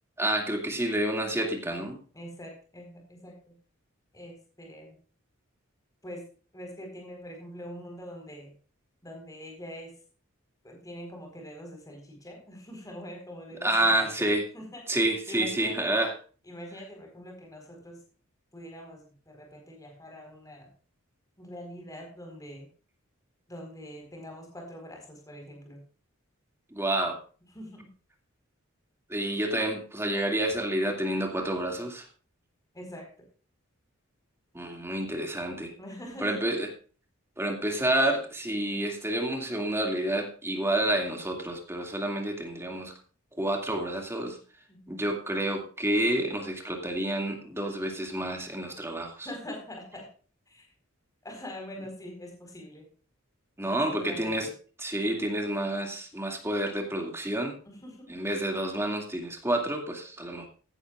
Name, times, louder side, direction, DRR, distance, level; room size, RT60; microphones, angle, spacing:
voice 1, 0.2-2.0 13.6-14.4 14.9-16.1 26.7-27.2 29.1-32.0 34.5-35.7 36.2-36.7 37.4-42.9 43.4-44.4 44.9-49.3 53.6-54.5 54.8-57.5 58.1-60.5, right 1 dB, 10° right, 2 dB, 2.3 m, -29 dB
voice 2, 2.1-3.5 4.1-5.0 6.0-6.3 6.5-8.5 9.0-9.9 10.6-14.8 15.3-16.0 16.4-18.0 18.5-20.7 21.4-22.7 23.5-25.8 27.5-27.9 32.7-33.1 35.8-36.5 44.7-45.0 49.2-50.1 50.5-50.7 51.2-52.9 53.6-54.5 57.6-58.2, equal, 15° left, 2 dB, 4.4 m, -44 dB
15.5 x 11.5 x 2.5 m, 0.39 s
head